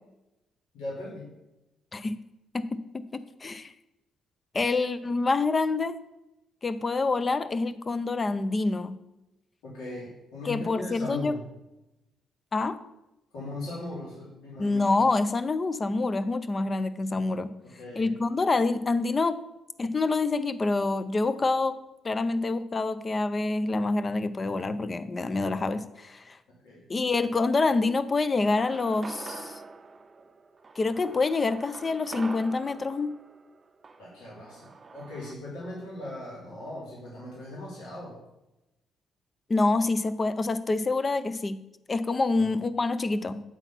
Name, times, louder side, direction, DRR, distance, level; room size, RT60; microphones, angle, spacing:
voice 1, 0.7-1.3 9.6-11.4 13.3-14.8 17.6-18.1 26.5-26.8 34.0-38.2 42.3-42.6, left 2 dB, 90° left, -7 dB, 2.5 m, -39 dB
voice 2, 2.5-3.7 4.5-6.0 6.6-8.9 10.4-11.4 12.5-12.8 14.6-17.5 18.0-19.4 19.8-21.8 22.0-26.4 26.9-29.6 30.8-33.1 39.5-41.6 41.9-43.4, left 3 dB, 30° left, 14 dB, 0.5 m, -27 dB
sound 1, 28.4-35.3, right 4 dB, 35° right, 0.6 m, -45 dB
8.1 x 4.0 x 5.8 m, 0.95 s
cardioid pair, 90°, 0 cm